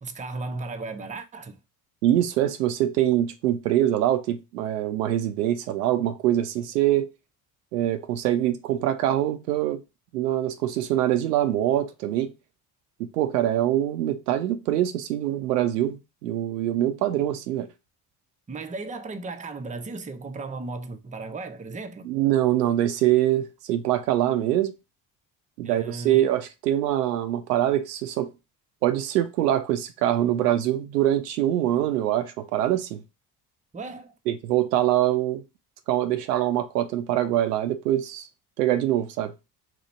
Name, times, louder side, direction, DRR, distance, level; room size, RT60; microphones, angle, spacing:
voice 1, 0.0-1.6 18.5-22.1 25.6-26.2 33.7-34.1, right 3 dB, 15° right, 0.6 m, -35 dB
voice 2, 2.0-7.1 7.7-9.8 10.1-12.3 13.1-17.7 22.0-24.7 25.6-28.3 28.8-33.0 34.3-35.4 35.9-38.2 38.6-39.3, right 12 dB, 85° right, 0.5 m, -24 dB
2.9 x 2.4 x 4.2 m
hypercardioid pair, 50°, 47 cm